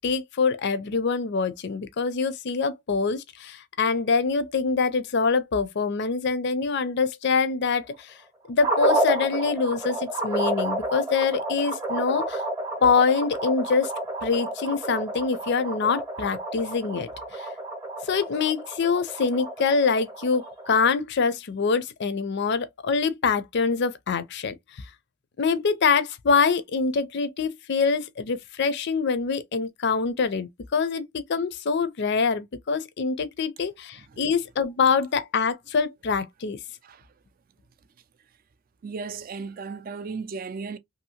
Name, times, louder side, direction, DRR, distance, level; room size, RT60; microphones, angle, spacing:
voice 1, 0.0-8.1 8.5-12.4 12.8-13.9 14.2-17.5 18.0-24.5 25.4-36.6, left 5 dB, 55° left, 0.5 m, -25 dB
sound 1, 8.6-20.9, right 1 dB, 15° right, 0.7 m, -30 dB
voice 2, 38.8-40.8, right 4 dB, 45° right, 0.4 m, -36 dB
2.7 x 2.7 x 2.7 m
head